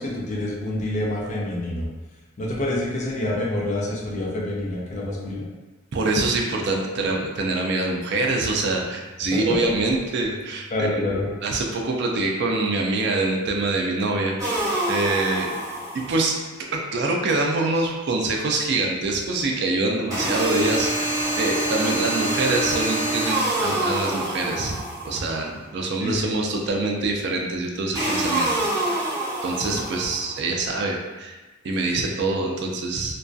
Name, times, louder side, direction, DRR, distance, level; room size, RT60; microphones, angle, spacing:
voice 1, 0.0-1.9 2.4-5.5 10.7-11.3 26.0-26.3 29.7-29.8, left 1 dB, 35° left, -3 dB, 0.5 m, -27 dB
voice 2, 5.9-15.5 15.9-16.4 16.7-21.1 21.4-24.8 25.0-28.5 28.9-31.4 31.6-33.2, right 2 dB, 55° right, 1 dB, 0.3 m, -25 dB
sound 1, 14.4-16.4 20.1-25.4 27.9-30.3, right 1 dB, 20° right, 0.6 m, -26 dB
2.3 x 2.2 x 2.5 m, 1.1 s
head